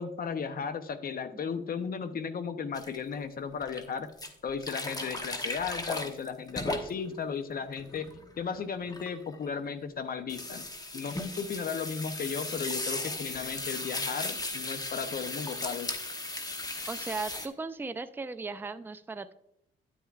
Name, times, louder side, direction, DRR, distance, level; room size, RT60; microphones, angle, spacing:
voice 1, 0.0-4.1 4.4-10.6 10.9-16.0, left 6 dB, 45° left, 11 dB, 0.7 m, -35 dB
sound 1, 2.7-3.0 3.6-3.8 4.2-7.2 7.6-9.5 10.3-17.5, left 2 dB, 20° left, 1.0 m, -36 dB
voice 2, 16.9-19.3, right 4 dB, 10° right, 10 dB, 0.5 m, -37 dB
9.6 x 9.4 x 2.4 m, 0.76 s
cardioid pair, 90°, 20 cm